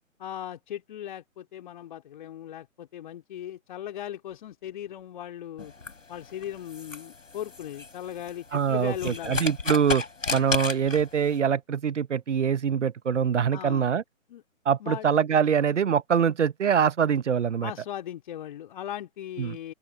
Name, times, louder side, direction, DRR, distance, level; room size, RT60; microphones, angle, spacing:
voice 1, 0.2-5.7 6.1-9.4 10.3-10.4 13.5-13.9 14.3-14.4 14.8-15.1 17.6-19.7, left 11 dB, 35° left, 2.7 m, -38 dB
sound 1, 5.6-11.4, left 4 dB, 70° left, 6.3 m, -34 dB
voice 2, 8.5-10.0 10.3-14.0 14.6-17.7 19.4-19.6, right 7 dB, 60° right, 0.8 m, -24 dB
open air
figure-of-eight pair, 135°, 40 cm